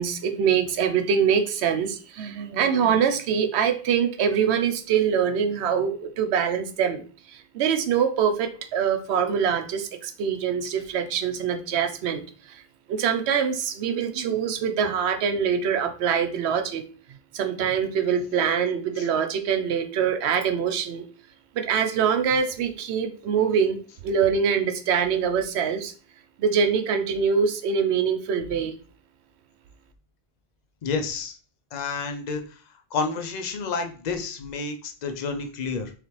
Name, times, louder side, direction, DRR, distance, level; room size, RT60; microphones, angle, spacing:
voice 1, 0.0-7.0 7.3-12.2 12.5-12.6 12.9-16.8 17.3-21.0 21.6-23.8 24.0-25.9 26.4-28.7, right 7 dB, 80° right, 7 dB, 0.9 m, -24 dB
voice 2, 30.8-31.4 31.7-32.6 32.9-35.9, left 4 dB, 50° left, 6 dB, 0.6 m, -30 dB
4.0 x 3.3 x 3.0 m, 0.39 s
omnidirectional pair, 1.1 m